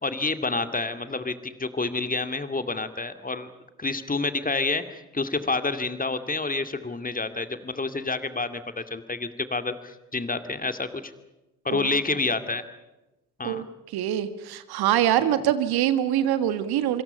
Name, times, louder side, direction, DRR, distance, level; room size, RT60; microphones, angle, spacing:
voice 1, 0.0-3.5 3.8-11.1 11.6-12.6 13.4-13.6 15.2-15.4, left 3 dB, 20° left, 10 dB, 2.4 m, -29 dB
voice 2, 13.9-17.0, right 11 dB, 55° right, 12 dB, 1.7 m, -24 dB
27.0 x 25.5 x 5.6 m, 1.0 s
figure-of-eight pair, 50°, 44 cm